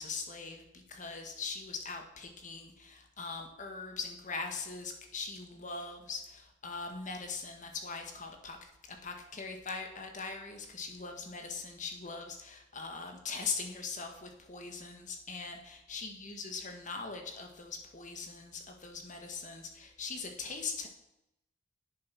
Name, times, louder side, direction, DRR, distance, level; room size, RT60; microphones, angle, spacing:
voice 1, 0.0-8.6 8.9-20.9, left 4 dB, 35° left, 4 dB, 1.7 m, -41 dB
10.5 x 8.4 x 6.1 m, 0.85 s
head